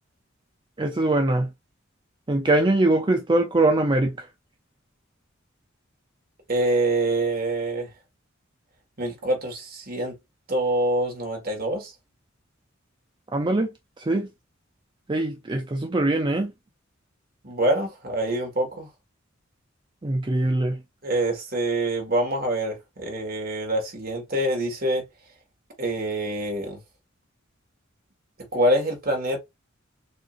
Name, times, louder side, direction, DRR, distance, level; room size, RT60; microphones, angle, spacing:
voice 1, 0.8-1.5 2.3-4.3 13.3-13.7 14.0-14.3 15.1-16.5 20.0-20.8, right 2 dB, 25° right, 0.5 m, -22 dB
voice 2, 6.5-7.9 9.0-10.1 10.5-11.9 17.4-18.9 21.0-25.0 25.8-26.8 28.5-29.4, right 1 dB, 50° right, 1.8 m, -25 dB
6.5 x 2.8 x 2.5 m
head